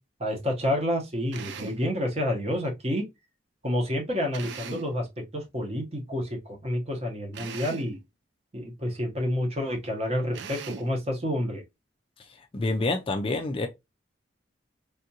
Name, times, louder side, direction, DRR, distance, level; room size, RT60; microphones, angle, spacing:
voice 1, 0.2-3.0 3.6-5.1 5.3-8.0 8.5-11.6, left 1 dB, 30° right, 1.0 m, -29 dB
Drill, 1.3-1.9 4.3-5.0 7.3-8.0 10.3-11.0, right 5 dB, 65° right, 0.4 m, -39 dB
voice 2, 12.5-13.7, left 2 dB, 30° left, 0.3 m, -27 dB
3.5 x 2.5 x 2.7 m
head